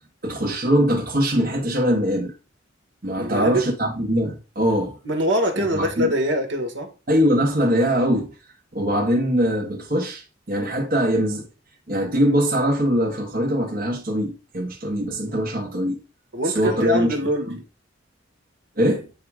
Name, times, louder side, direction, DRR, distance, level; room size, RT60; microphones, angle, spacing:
voice 1, 0.2-2.3 3.0-5.0 5.5-6.1 7.1-8.3 8.7-11.5 11.9-16.0 16.4-17.2 17.5-17.6 18.8-19.1, equal, 45° right, 1.4 m, -22 dB
voice 2, 3.2-3.7 5.0-6.9 16.3-17.5, equal, 65° right, 1.8 m, -23 dB
8.8 x 3.7 x 4.9 m
head